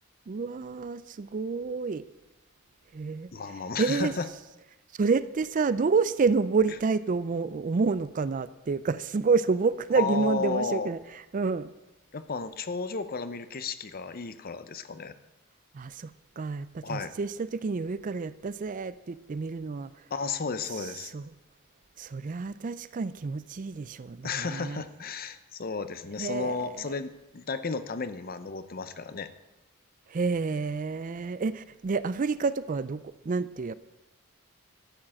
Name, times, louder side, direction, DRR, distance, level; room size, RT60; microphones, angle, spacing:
voice 1, 0.3-2.0 2.9-3.3 3.8-4.1 5.0-11.0 11.3-11.7 15.7-16.1 16.4-19.9 21.1-21.2 22.0-24.8 26.2-26.9 30.1-33.7, right 4 dB, 35° right, 16 dB, 0.4 m, -29 dB
voice 2, 3.3-4.3 10.0-10.9 12.1-15.1 16.8-17.1 20.1-21.1 24.2-29.3, left 4 dB, 45° left, 12 dB, 0.7 m, -33 dB
13.0 x 7.2 x 7.5 m, 1.0 s
head